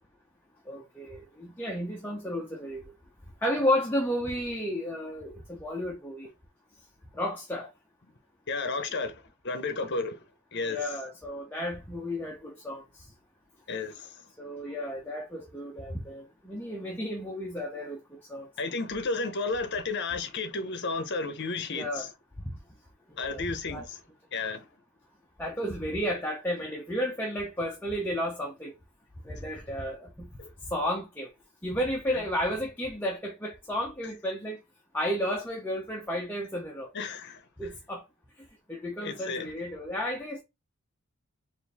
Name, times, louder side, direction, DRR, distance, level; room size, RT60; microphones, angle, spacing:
voice 1, 0.7-2.8 3.4-6.3 7.1-7.7 10.7-12.8 14.4-18.5 21.7-22.1 23.1-23.4 23.7-23.8 25.4-28.7 29.2-30.3 30.7-31.3 31.6-34.6 34.9-36.9 37.6-38.0 38.7-40.4, equal, 10° left, 0.7 m, -32 dB
voice 2, 8.5-10.3 10.5-10.9 13.7-14.2 18.6-22.1 23.2-24.0 24.3-24.7 30.4-30.5 32.1-32.2 36.9-37.4 39.0-39.5, left 3 dB, 50° left, 0.8 m, -33 dB
4.4 x 2.7 x 3.4 m
head